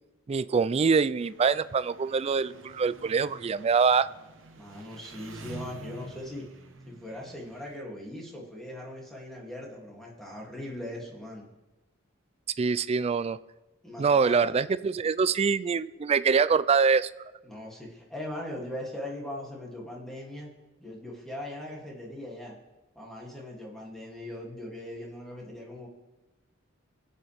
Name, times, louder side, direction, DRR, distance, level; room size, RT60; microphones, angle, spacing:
voice 1, 0.3-4.1 12.6-13.4 14.0-17.1, right 5 dB, 30° right, 16 dB, 0.3 m, -24 dB
Engine, 1.2-7.8, right 2 dB, 75° right, 1.1 m, -48 dB
voice 2, 4.5-6.5 6.8-11.5 13.8-14.5 17.4-20.5 20.8-22.6 22.9-25.9, left 1 dB, ahead, -3 dB, 2.5 m, -40 dB
24.0 x 8.6 x 3.5 m, 1.1 s
head